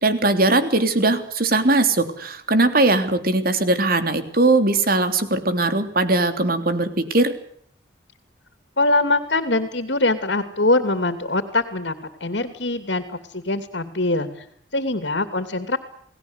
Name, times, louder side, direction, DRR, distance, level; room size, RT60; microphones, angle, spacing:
voice 1, 0.0-7.3, right 2 dB, 50° right, 8 dB, 3.4 m, -20 dB
voice 2, 8.8-11.9 12.2-14.3 14.7-15.8, left 2 dB, 65° left, 9 dB, 2.8 m, -22 dB
29.5 x 19.5 x 8.2 m, 0.64 s
head